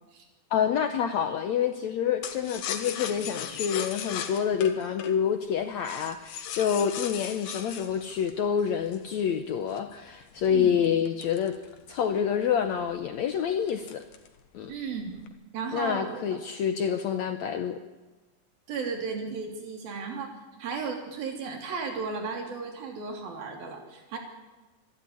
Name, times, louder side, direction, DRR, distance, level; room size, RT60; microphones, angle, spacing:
voice 1, 0.5-11.6 11.9-14.0 14.5-14.7 15.7-17.8, left 8 dB, 70° left, 7 dB, 1.7 m, -27 dB
sound 1, 2.2-9.1 9.7-12.1 12.5-12.6 12.9-13.2 13.7-14.4 14.7-15.3, left 9 dB, 85° left, 3.3 m, -37 dB
voice 2, 14.7-15.2 15.5-16.4 18.7-20.3 20.6-24.2, right 5 dB, 75° right, 3 dB, 4.8 m, -34 dB
26.0 x 11.5 x 9.8 m, 1.2 s
omnidirectional pair, 4.2 m